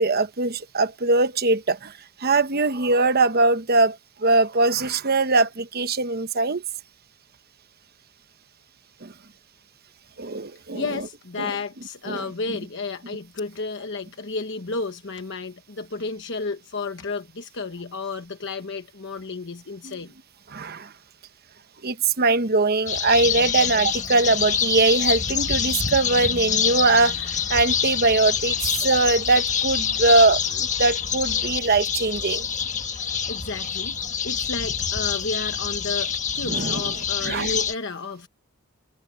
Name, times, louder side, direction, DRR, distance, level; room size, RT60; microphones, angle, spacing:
voice 1, 0.0-1.9 2.2-6.6 9.0-9.1 10.2-10.8 11.4-11.5 12.1-12.2 19.8-19.9 20.5-20.9 21.8-32.4 36.4-36.9 37.2-37.5, right 3 dB, 45° right, 1.0 m, -21 dB
voice 2, 10.7-20.1 33.0-38.3, left 4 dB, 55° left, 1.1 m, -32 dB
sound 1, 22.9-37.7, left 7 dB, 35° left, 1.5 m, -26 dB
head